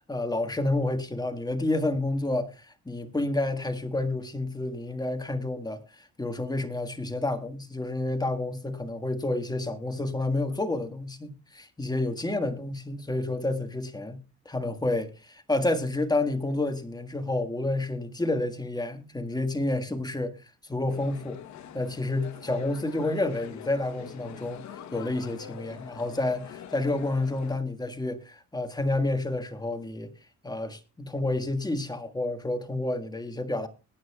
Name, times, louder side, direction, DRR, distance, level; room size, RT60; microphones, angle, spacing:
voice 1, 0.1-20.4 20.7-21.4 21.7-24.6 24.9-30.1 30.4-33.7, left 2 dB, 15° left, 1.6 m, -29 dB
sound 1, 20.9-27.6, left 9 dB, 65° left, 1.1 m, -44 dB
21.5 x 9.3 x 2.3 m
cardioid pair, 95°, 30 cm